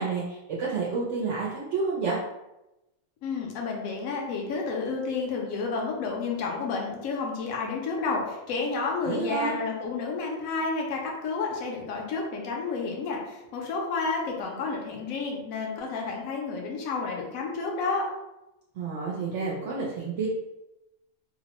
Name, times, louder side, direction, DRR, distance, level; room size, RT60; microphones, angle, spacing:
voice 1, 0.0-2.2 9.0-9.6 18.8-20.3, right 4 dB, 65° right, -5 dB, 0.8 m, -29 dB
voice 2, 3.2-18.1, left 4 dB, 70° left, -1 dB, 1.0 m, -30 dB
2.8 x 2.0 x 2.9 m, 0.94 s
omnidirectional pair, 1.5 m